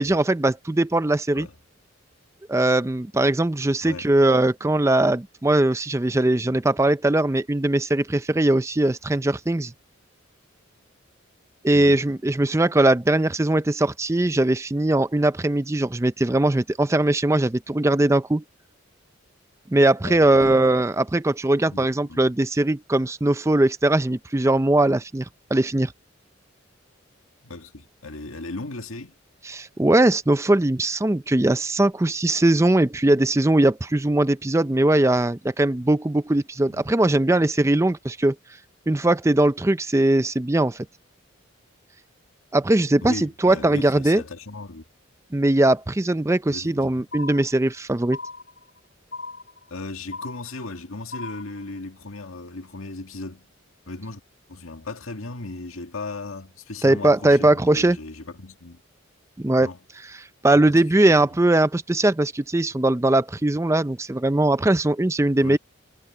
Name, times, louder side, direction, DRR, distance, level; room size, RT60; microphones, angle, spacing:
voice 1, 0.0-1.5 2.5-9.7 11.6-18.4 19.7-25.9 29.5-38.4 38.9-40.9 42.5-44.2 45.3-48.2 56.8-58.0 59.4-59.7 60.4-65.6, right 1 dB, 15° right, 0.4 m, -20 dB
voice 2, 11.7-12.1 20.0-20.6 21.7-22.2 27.4-29.2 36.7-36.9 43.0-44.8 46.5-47.0 49.7-53.5 53.9-54.2 54.5-58.8 59.6-59.8 60.5-60.8 65.4-65.6, left 3 dB, 85° left, 1.9 m, -37 dB
sound 1, 47.1-47.8 48.1-48.8 49.1-49.8 50.1-50.8 51.1-51.8, left 3 dB, 60° left, 3.9 m, -37 dB
head